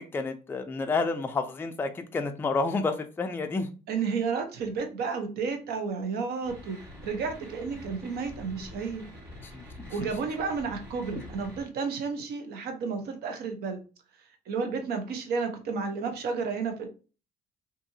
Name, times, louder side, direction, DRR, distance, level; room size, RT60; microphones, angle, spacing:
voice 1, 0.0-3.7 9.4-10.1 11.2-11.3, left 3 dB, 15° left, 6 dB, 0.3 m, -30 dB
voice 2, 3.9-6.8 7.0-9.0 9.9-13.8 14.5-16.9, right 5 dB, 70° right, 5 dB, 0.7 m, -31 dB
sound 1, 6.4-11.6, left 1 dB, 20° right, 1.4 m, -46 dB
2.7 x 2.6 x 2.6 m, 0.34 s
cardioid pair, 110°, 17 cm